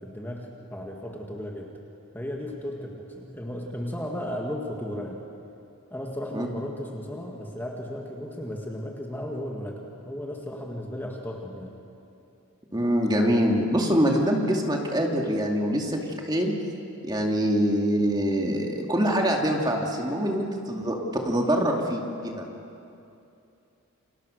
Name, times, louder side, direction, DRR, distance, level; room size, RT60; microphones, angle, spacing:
voice 1, 0.0-1.7 2.1-5.2 5.9-11.8, equal, 10° left, -1 dB, 2.0 m, -35 dB
voice 2, 12.7-16.5 17.0-21.0 21.2-22.4, equal, 20° right, 1 dB, 2.5 m, -24 dB
29.5 x 26.5 x 6.6 m, 2.7 s
head